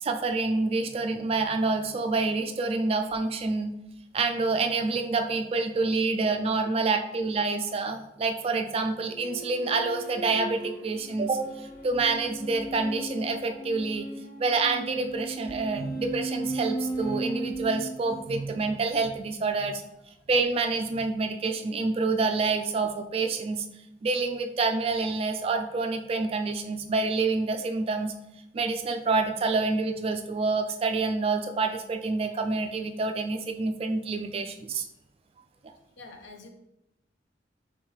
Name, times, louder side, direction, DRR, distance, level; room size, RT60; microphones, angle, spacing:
voice 1, 0.0-3.7 4.1-14.1 14.4-19.8 20.3-23.7 24.0-28.1 28.5-34.9, right 3 dB, 30° right, 6 dB, 0.3 m, -27 dB
sound 1, 9.0-18.7, right 2 dB, 50° left, 0.7 m, -36 dB
voice 2, 36.0-36.5, left 3 dB, 85° left, 4 dB, 0.7 m, -46 dB
4.6 x 3.6 x 3.1 m, 0.88 s
head